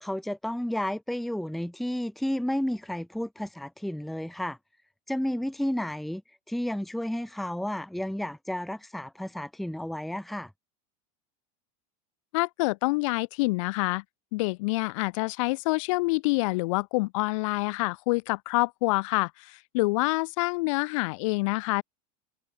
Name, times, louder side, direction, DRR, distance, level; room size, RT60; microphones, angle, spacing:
voice 1, 0.0-4.6 5.1-6.2 6.5-10.5, left 1 dB, ahead, 1.2 m, -32 dB
voice 2, 12.3-14.0 14.3-21.8, left 25 dB, 60° left, 2.4 m, -27 dB
supercardioid pair, 165°, 19 cm